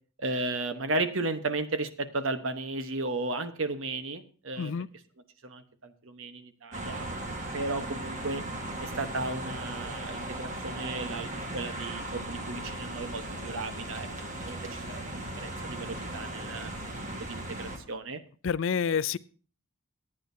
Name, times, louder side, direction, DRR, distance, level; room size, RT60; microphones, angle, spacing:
voice 1, 0.2-4.7 5.4-7.1 7.5-8.4 8.8-14.1 14.4-18.2, right 2 dB, 65° right, 10 dB, 1.1 m, -34 dB
voice 2, 4.6-4.9 18.4-19.2, left 6 dB, 65° left, 17 dB, 0.4 m, -28 dB
sound 1, 6.7-17.8, right 1 dB, 35° right, 1.5 m, -37 dB
20.5 x 8.8 x 2.7 m, 0.40 s
head